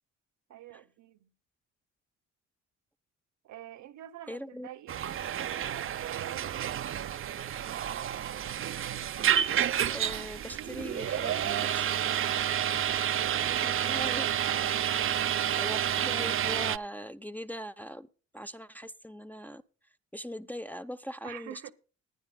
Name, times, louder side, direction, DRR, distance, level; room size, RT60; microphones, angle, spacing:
voice 1, 0.5-1.3 3.4-7.4 12.6-15.8 21.2-21.7, right 13 dB, 70° right, 0.9 m, -46 dB
voice 2, 4.3-4.7 9.9-12.0 12.7-13.0 13.6-14.2 15.6-18.1 18.3-19.6 20.1-21.7, equal, 5° left, 0.6 m, -41 dB
sound 1, 4.9-16.8, right 10 dB, 45° right, 0.5 m, -30 dB
20.0 x 10.5 x 2.2 m
cardioid pair, 90°, 30 cm